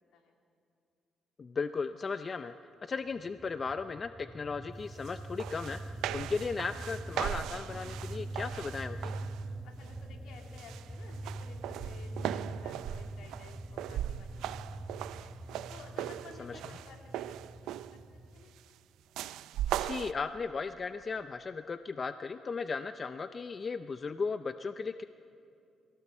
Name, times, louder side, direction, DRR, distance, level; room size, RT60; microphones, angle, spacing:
voice 1, 1.4-2.5 2.8-5.8 6.1-9.2 16.4-16.6 19.8-25.0, left 4 dB, 40° left, 10 dB, 0.5 m, -36 dB
sound 1, 3.1-18.5, right 2 dB, 5° right, 0.9 m, -43 dB
sound 2, 5.1-5.2 5.4-9.4 9.9-10.2 10.6-18.0 19.2-20.1, right 12 dB, 90° right, 0.4 m, -39 dB
voice 2, 9.6-15.3 15.7-18.0 18.3-18.5, left 5 dB, 80° left, 1 dB, 2.9 m, -55 dB
22.5 x 17.0 x 7.2 m, 2.5 s
cardioid pair, 90°, 0 cm